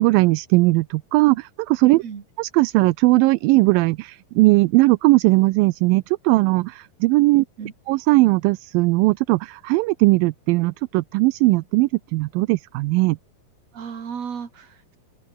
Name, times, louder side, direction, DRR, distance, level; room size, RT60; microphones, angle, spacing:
voice 1, 0.0-2.0 2.4-7.4 7.9-13.2, right 21 dB, 80° right, 2.2 m, -18 dB
voice 2, 7.4-7.7 13.7-15.0, right 7 dB, 45° right, 3.8 m, -35 dB
open air
omnidirectional pair, 4.3 m